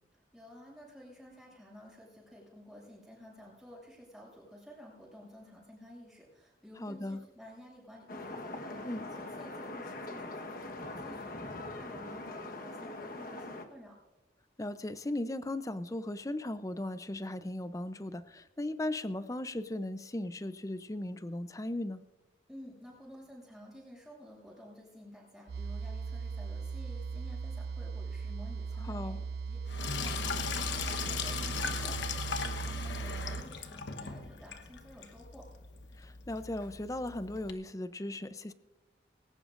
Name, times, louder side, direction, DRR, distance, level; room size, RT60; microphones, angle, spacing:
voice 1, 0.1-14.0 22.5-35.5, equal, ahead, -4 dB, 6.7 m, -52 dB
voice 2, 6.8-7.2 8.8-9.1 14.6-22.0 28.8-29.2 36.0-38.5, left 1 dB, 15° left, 12 dB, 0.5 m, -37 dB
sound 1, 8.1-13.7, left 2 dB, 50° left, 1.2 m, -42 dB
sound 2, 25.5-33.4, right 5 dB, 55° right, 0.3 m, -38 dB
Sink (filling or washing), 29.7-37.5, left 5 dB, 70° left, 1.1 m, -38 dB
20.5 x 18.0 x 2.5 m, 1.1 s
head